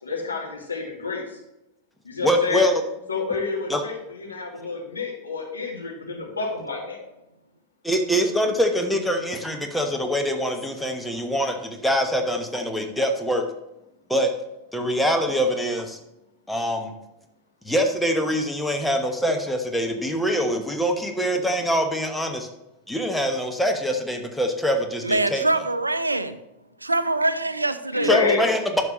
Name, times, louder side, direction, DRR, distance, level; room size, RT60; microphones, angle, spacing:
voice 1, 0.0-1.4 2.0-2.7 3.1-7.0 27.9-28.5, left 4 dB, 80° left, -1 dB, 2.1 m, -28 dB
voice 2, 2.2-2.8 3.7-3.8 7.8-13.4 14.1-14.3 14.7-16.0 16.5-16.9 17.6-22.5 22.9-25.4 28.0-28.8, equal, 5° left, 3 dB, 1.1 m, -24 dB
voice 3, 25.0-26.4 26.8-28.1, right 2 dB, 80° right, 13 dB, 0.5 m, -24 dB
10.5 x 7.0 x 3.1 m, 0.90 s
figure-of-eight pair, 90°, 0 cm